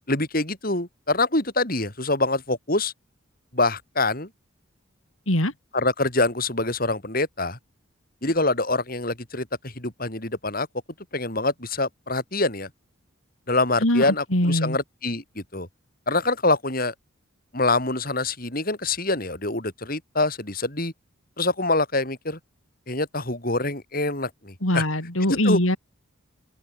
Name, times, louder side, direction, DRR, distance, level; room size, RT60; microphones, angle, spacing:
voice 1, 0.1-2.9 3.5-4.3 5.7-7.6 8.2-10.7 11.1-12.7 13.5-15.7 16.1-16.9 17.5-20.9 21.4-22.4 22.9-24.8 25.3-25.6, left 2 dB, 45° left, 5.2 m, -25 dB
voice 2, 13.8-14.8 24.6-25.8, left 1 dB, 75° left, 6.2 m, -22 dB
open air
head